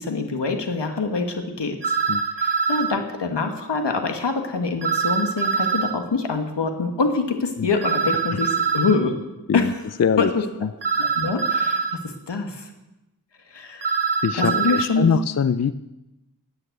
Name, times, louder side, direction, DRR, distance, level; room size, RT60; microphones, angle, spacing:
voice 1, 0.0-1.8 2.4-9.1 9.5-9.7 10.2-10.4 11.0-12.7 13.5-13.9 14.4-15.1, left 4 dB, 90° left, 5 dB, 1.6 m, -25 dB
sound 1, 1.8-2.9 4.8-5.9 7.8-9.0 10.8-12.0 13.8-14.9, right 5 dB, 75° right, 1.1 m, -23 dB
voice 2, 10.0-10.3 10.6-10.7 14.2-15.7, left 6 dB, 40° left, 14 dB, 0.5 m, -22 dB
9.8 x 8.9 x 7.9 m, 0.97 s
wide cardioid pair, 50°, 41 cm